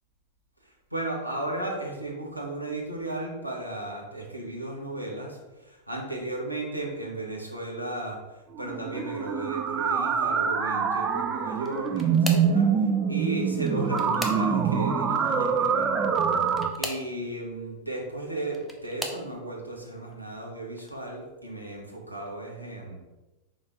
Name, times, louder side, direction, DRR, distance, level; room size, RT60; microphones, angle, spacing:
voice 1, 0.9-16.2 16.8-23.0, right 2 dB, 85° right, -1 dB, 1.3 m, -35 dB
sound 1, 8.6-16.7, right 6 dB, 25° right, 0.5 m, -25 dB
sound 2, 11.6-12.6 13.5-14.8 16.4-17.1 18.2-19.3 20.0-20.4 20.8-20.9 22.3-22.4, equal, ahead, 0.8 m, -38 dB
5.2 x 3.9 x 4.7 m, 1.1 s
figure-of-eight pair, 90°, 0 cm